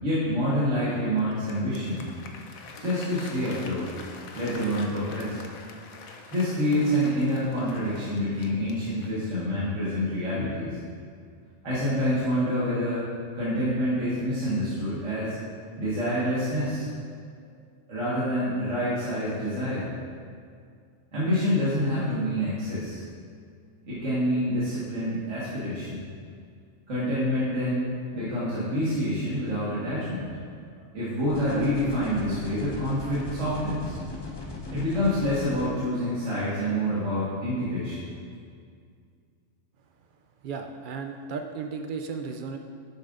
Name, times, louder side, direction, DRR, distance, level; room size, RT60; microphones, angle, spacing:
voice 1, 0.0-2.1 2.8-3.9 4.4-5.4 6.3-10.8 11.6-13.0 13.3-15.4 15.8-16.9 17.9-19.9 21.1-23.0 23.8-26.1 26.9-30.3 30.9-34.0 34.7-38.0, equal, 65° right, -11 dB, 2.0 m, -27 dB
Applause, 1.2-9.3, left 4 dB, 85° left, 1.2 m, -45 dB
sound 1, 31.3-35.7, left 3 dB, 25° left, 0.6 m, -38 dB
voice 2, 40.4-42.6, right 5 dB, 85° right, 4 dB, 0.4 m, -34 dB
11.0 x 7.4 x 2.5 m, 2.2 s
omnidirectional pair, 1.4 m